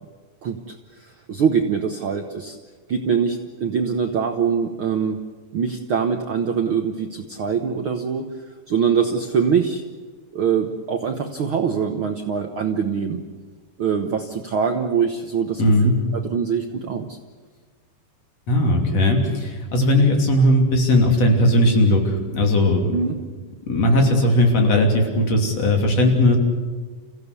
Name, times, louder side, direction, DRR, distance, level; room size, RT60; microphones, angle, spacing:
voice 1, 0.4-2.6 2.9-5.2 5.5-8.3 8.7-9.8 10.3-13.2 13.8-17.2 22.9-23.1, right 6 dB, 60° right, 5 dB, 1.4 m, -23 dB
voice 2, 15.6-16.0 18.5-22.9 23.7-26.4, left 1 dB, 50° left, 2 dB, 4.1 m, -18 dB
29.5 x 16.0 x 8.3 m, 1.5 s
omnidirectional pair, 3.7 m